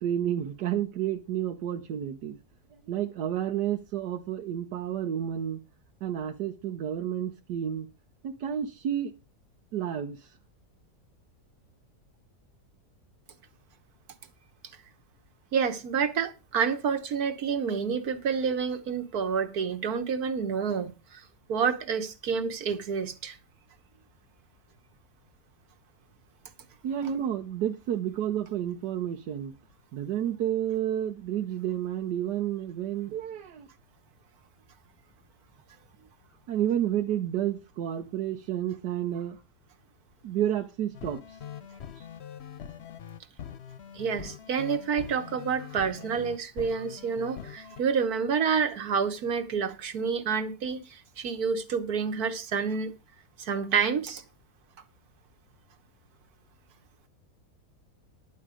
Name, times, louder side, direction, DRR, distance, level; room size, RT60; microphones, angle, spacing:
voice 1, 0.0-2.4 2.9-5.6 6.0-7.9 8.2-9.1 9.7-10.3 26.8-29.5 29.9-33.7 36.5-39.4 40.2-41.4, right 10 dB, 85° right, 1.4 m, -30 dB
voice 2, 15.5-21.2 21.5-23.4 44.0-52.9 53.4-54.2, right 6 dB, 65° right, 1.7 m, -28 dB
sound 1, 40.9-47.8, left 8 dB, 50° left, 0.9 m, -43 dB
11.0 x 8.6 x 4.9 m
omnidirectional pair, 1.7 m